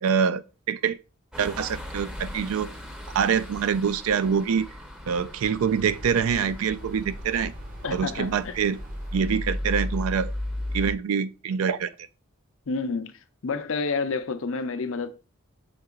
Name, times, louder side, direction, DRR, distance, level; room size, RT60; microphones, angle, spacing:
voice 1, 0.0-1.0 1.4-2.7 3.1-4.7 5.1-7.5 7.9-8.8 9.1-10.3 10.7-11.9, right 7 dB, 80° right, 0.4 m, -25 dB
sound 1, 1.3-11.0, left 1 dB, 5° right, 0.6 m, -36 dB
sound 2, 5.9-10.1, right 1 dB, 40° right, 0.8 m, -44 dB
voice 2, 7.8-8.6 12.7-15.1, left 4 dB, 65° left, 0.6 m, -29 dB
5.9 x 3.8 x 2.3 m
head